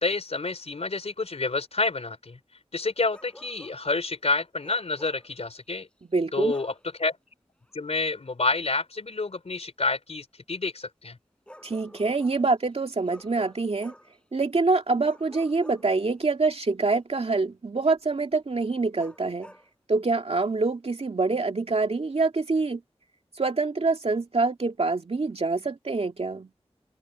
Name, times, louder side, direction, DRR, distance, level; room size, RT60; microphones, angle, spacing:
voice 1, 0.0-2.4 2.7-5.9 6.3-6.7 7.0-7.2 7.7-11.2, left 3 dB, 70° left, 3.9 m, -28 dB
Bark, 3.1-3.8 4.6-5.3 6.5-6.8 8.5-8.7 11.5-12.4 13.1-14.2 15.0-16.3 19.0-19.7, equal, 10° left, 6.2 m, -50 dB
voice 2, 6.1-6.5 11.6-13.9 14.3-19.5 19.9-22.8 23.4-26.5, right 3 dB, 65° right, 2.2 m, -25 dB
wide cardioid pair, 70°, 11 cm